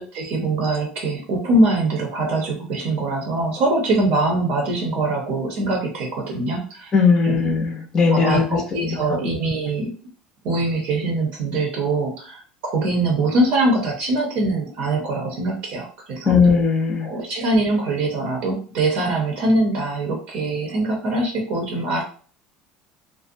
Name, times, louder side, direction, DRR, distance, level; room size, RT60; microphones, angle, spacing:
voice 1, 0.0-6.9 7.2-7.4 8.1-9.9 10.4-16.4 17.0-22.0, right 2 dB, 55° right, 0 dB, 0.8 m, -23 dB
voice 2, 6.9-8.4 16.3-17.1, left 5 dB, 25° left, 0 dB, 0.5 m, -17 dB
2.5 x 2.1 x 2.5 m, 0.41 s
cardioid pair, 155°, 2 cm